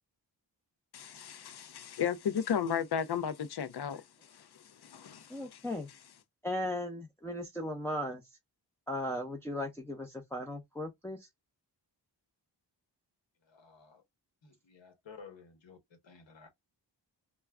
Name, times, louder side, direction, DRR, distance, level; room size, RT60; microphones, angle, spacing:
voice 1, 0.9-5.6, left 8 dB, 60° left, 0.6 m, -35 dB
voice 2, 5.3-5.9 6.4-8.2 8.9-11.3, left 1 dB, 5° left, 0.6 m, -37 dB
voice 3, 13.5-14.0 14.4-15.8 16.0-16.5, left 5 dB, 85° left, 1.1 m, -53 dB
2.3 x 2.2 x 3.3 m
wide cardioid pair, 60°, 44 cm